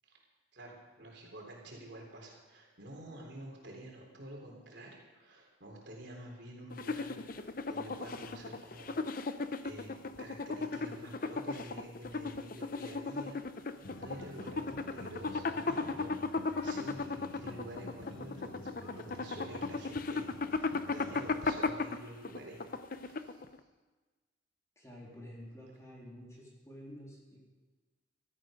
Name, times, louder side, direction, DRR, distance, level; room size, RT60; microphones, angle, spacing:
voice 1, 0.5-23.4, right 1 dB, 60° right, 0 dB, 3.7 m, -49 dB
sound 1, 6.7-23.6, left 3 dB, 45° left, 0.7 m, -36 dB
sound 2, 13.8-21.7, left 1 dB, 90° left, 3.6 m, -51 dB
voice 2, 24.7-27.5, equal, 15° left, -4 dB, 3.5 m, -50 dB
16.0 x 13.5 x 5.2 m, 1.3 s
head